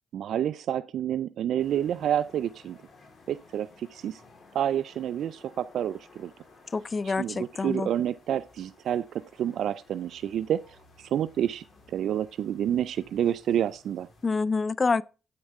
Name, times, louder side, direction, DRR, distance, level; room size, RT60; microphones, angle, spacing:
voice 1, 0.1-2.8 3.3-4.2 4.5-6.3 7.0-10.6 11.0-14.1, right 10 dB, 75° right, 0.4 m, -29 dB
sound 1, 1.6-14.3, left 3 dB, 55° left, 4.0 m, -56 dB
voice 2, 6.7-7.9 14.2-15.0, left 4 dB, 35° left, 0.5 m, -27 dB
9.6 x 8.3 x 3.6 m
cardioid pair, 75°, 0 cm